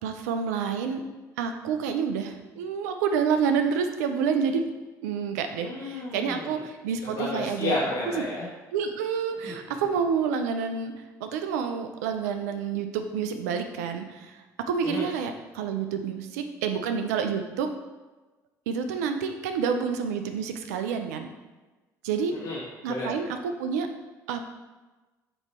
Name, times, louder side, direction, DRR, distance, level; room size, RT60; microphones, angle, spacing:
voice 1, 0.0-1.0 1.4-4.6 5.0-7.7 8.7-10.9 11.2-14.4 14.7-17.7 18.7-21.3 22.0-22.3 22.8-23.9 24.3-24.4, right 6 dB, 90° right, 7 dB, 0.6 m, -28 dB
voice 2, 5.6-6.6 7.1-8.5 9.4-9.5 14.8-15.1 22.3-23.1, left 2 dB, 75° left, -8 dB, 1.8 m, -32 dB
7.8 x 3.1 x 4.3 m, 1.2 s
hypercardioid pair, 65°, 8 cm